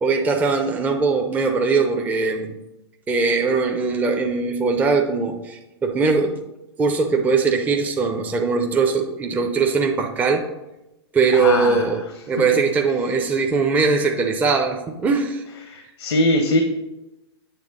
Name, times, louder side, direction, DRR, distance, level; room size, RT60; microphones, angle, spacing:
voice 1, 0.0-2.5 3.1-6.3 6.8-10.4 11.1-12.0 12.3-15.4, right 4 dB, 10° right, 2 dB, 0.6 m, -20 dB
voice 2, 11.3-11.8 15.7-16.6, left 1 dB, 80° left, 5 dB, 1.0 m, -21 dB
8.3 x 3.3 x 6.4 m, 0.96 s
hypercardioid pair, 130°, 14 cm